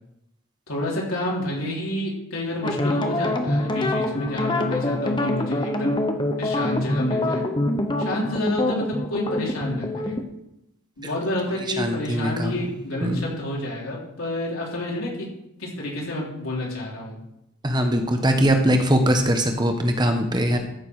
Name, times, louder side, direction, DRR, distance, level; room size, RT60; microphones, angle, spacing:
voice 1, 0.7-5.9 6.4-7.5 8.0-10.1 11.0-15.3 15.6-17.2, left 1 dB, 80° left, -4 dB, 3.8 m, -29 dB
sound 1, 2.6-10.2, left 1 dB, 20° left, 0.9 m, -25 dB
voice 2, 11.8-12.5 13.0-13.3 17.6-20.6, equal, 20° right, 5 dB, 1.1 m, -21 dB
14.5 x 6.8 x 4.8 m, 0.84 s
head